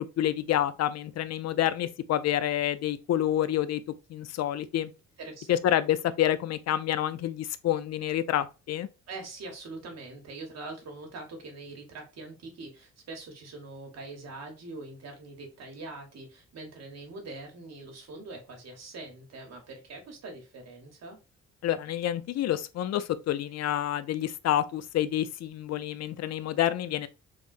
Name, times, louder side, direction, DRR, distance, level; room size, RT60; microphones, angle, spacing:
voice 1, 0.0-3.8 4.1-4.9 5.5-8.9 21.6-27.1, left 12 dB, 60° left, 0.5 m, -28 dB
voice 2, 5.2-5.6 9.1-21.2, right 2 dB, 60° right, 1.4 m, -43 dB
3.5 x 3.4 x 2.5 m
cardioid pair, 90°, 30 cm